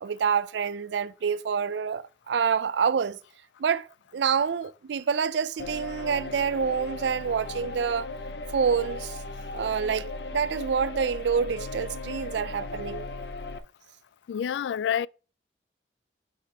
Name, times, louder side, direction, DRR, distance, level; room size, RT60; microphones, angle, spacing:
voice 1, 0.0-3.2 3.6-3.9 4.1-8.1 8.5-9.2 9.5-13.1, right 6 dB, 80° right, 0.4 m, -27 dB
sound 1, 5.6-13.6, left 2 dB, 70° left, 0.7 m, -37 dB
voice 2, 14.3-15.1, left 8 dB, 90° left, 0.3 m, -27 dB
6.5 x 5.8 x 4.6 m
head